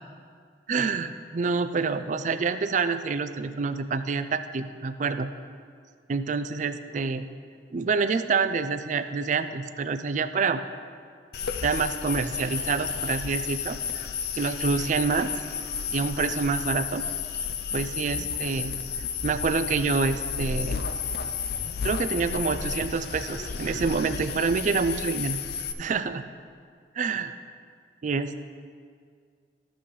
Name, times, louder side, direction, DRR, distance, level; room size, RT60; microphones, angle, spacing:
voice 1, 0.7-5.3 6.1-7.3 7.7-10.6 11.6-14.0 14.3-15.3 15.9-17.0 17.7-18.7 19.2-20.8 21.8-25.4 25.8-26.2 27.0-27.3 28.0-28.3, right 4 dB, 45° right, 11 dB, 0.4 m, -27 dB
sound 1, 11.3-25.7, left 6 dB, 60° left, 0.5 m, -32 dB
13.0 x 8.1 x 3.1 m, 2.1 s
head